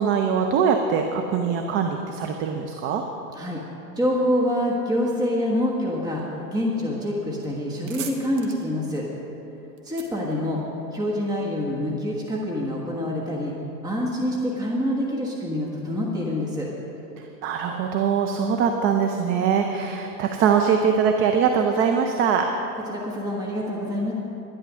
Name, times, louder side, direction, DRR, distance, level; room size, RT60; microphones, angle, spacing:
voice 1, 0.0-3.0 17.2-22.5, right 6 dB, 25° right, 4 dB, 0.6 m, -22 dB
voice 2, 3.9-9.1 9.8-10.6 10.9-13.5 13.8-16.7 22.9-24.1, left 1 dB, 10° right, -3 dB, 1.4 m, -26 dB
sound 1, 7.6-11.2, right 7 dB, 45° right, 1.6 m, -41 dB
11.5 x 11.0 x 6.2 m, 2.9 s
hypercardioid pair, 120°, 49 cm